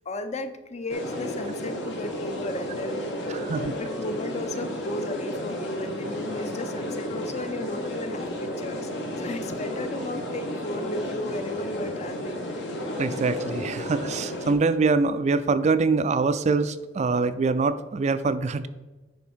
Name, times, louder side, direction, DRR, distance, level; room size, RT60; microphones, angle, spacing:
voice 1, 0.0-12.6, left 2 dB, 35° left, 9 dB, 0.6 m, -35 dB
sound 1, 0.9-14.5, left 1 dB, 70° left, 1.4 m, -32 dB
voice 2, 3.3-3.7 13.0-18.7, right 4 dB, 40° right, 12 dB, 0.4 m, -24 dB
9.4 x 3.5 x 6.1 m, 1.2 s
head